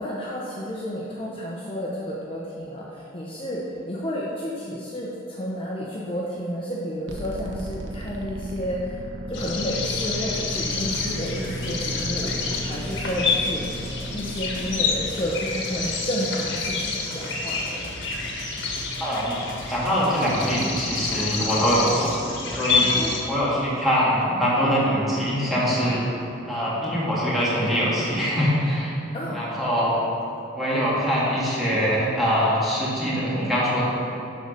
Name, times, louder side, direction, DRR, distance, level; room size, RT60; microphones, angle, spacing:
voice 1, 0.0-3.6 3.8-9.0 9.3-13.6 14.1-17.8 22.8-23.2 29.1-29.4, equal, 30° left, -5 dB, 0.9 m, -31 dB
sound 1, 7.1-15.1, right 1 dB, 85° right, 1.0 m, -36 dB
sound 2, 9.3-23.2, left 4 dB, 85° left, 1.5 m, -28 dB
Drum, 10.5-22.2, left 1 dB, 50° left, 1.4 m, -41 dB
voice 2, 19.0-19.4 19.7-22.2 22.4-22.9 23.3-26.1 26.5-28.9 29.3-30.0 30.5-33.9, equal, ahead, -9 dB, 2.3 m, -23 dB
11.5 x 4.1 x 6.6 m, 2.8 s
head